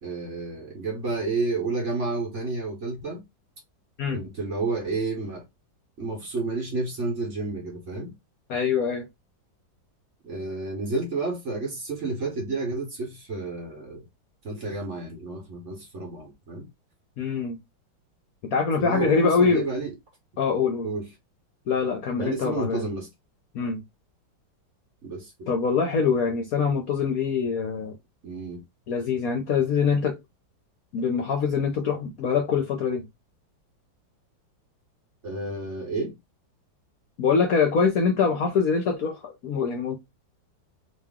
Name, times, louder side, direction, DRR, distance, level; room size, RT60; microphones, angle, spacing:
voice 1, 0.0-3.2 4.1-5.4 6.0-8.1 10.2-14.0 14.4-16.7 18.8-19.9 20.8-21.1 22.2-23.1 25.0-25.5 28.2-28.6 35.2-36.2, right 3 dB, 45° right, 1.2 m, -30 dB
voice 2, 8.5-9.1 17.2-17.6 18.5-19.7 20.4-20.9 21.7-22.8 23.5-23.8 25.5-28.0 28.9-30.2 30.9-33.1 37.2-40.0, left 5 dB, 65° left, 0.9 m, -24 dB
3.1 x 2.7 x 3.5 m
omnidirectional pair, 2.0 m